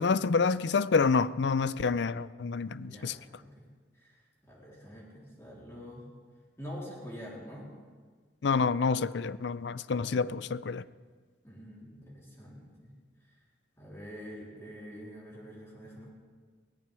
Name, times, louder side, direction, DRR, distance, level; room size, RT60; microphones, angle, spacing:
voice 1, 0.0-3.2 8.4-10.8, left 4 dB, 85° left, 0.5 m, -28 dB
voice 2, 2.9-3.7 4.0-6.0 6.6-7.7 10.0-10.3 11.4-12.9 13.8-16.1, equal, 15° left, 3.6 m, -46 dB
22.5 x 18.0 x 3.5 m
head